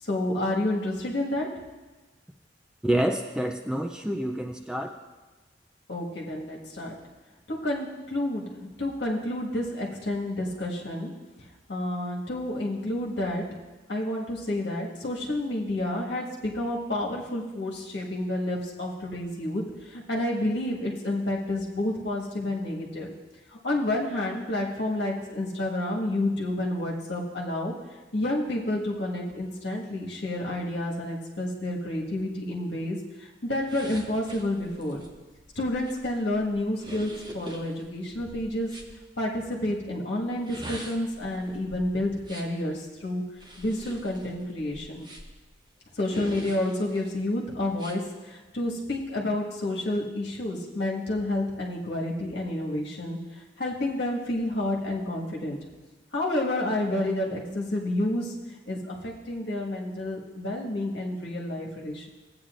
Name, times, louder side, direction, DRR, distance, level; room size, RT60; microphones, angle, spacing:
voice 1, 0.0-1.5 5.9-6.9 7.5-11.1 11.7-13.5 13.9-23.1 23.5-27.7 28.1-35.0 35.5-38.7 39.2-43.2 43.6-45.1 45.9-55.6 56.1-58.3 58.7-62.1, left 1 dB, 65° left, -3 dB, 1.6 m, -30 dB
voice 2, 2.8-4.9, right 1 dB, 5° right, 3 dB, 0.3 m, -27 dB
sound 1, 33.7-38.9 40.3-42.6 43.3-45.5 46.1-47.1 47.7-48.0, equal, 25° right, 0.9 m, -44 dB
15.0 x 8.7 x 2.5 m, 1.2 s
head